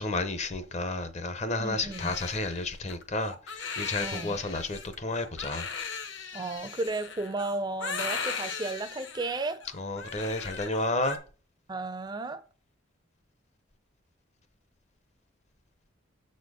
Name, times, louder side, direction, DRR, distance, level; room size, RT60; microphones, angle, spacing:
voice 1, 0.0-5.7 9.8-11.2, left 2 dB, 35° left, 0.7 m, -31 dB
voice 2, 1.6-2.1 4.0-4.4 6.3-9.6 11.7-12.4, right 2 dB, 20° right, 0.4 m, -34 dB
Crying sobbing, 1.9-11.2, left 5 dB, 65° left, 1.1 m, -38 dB
7.0 x 4.3 x 4.8 m
head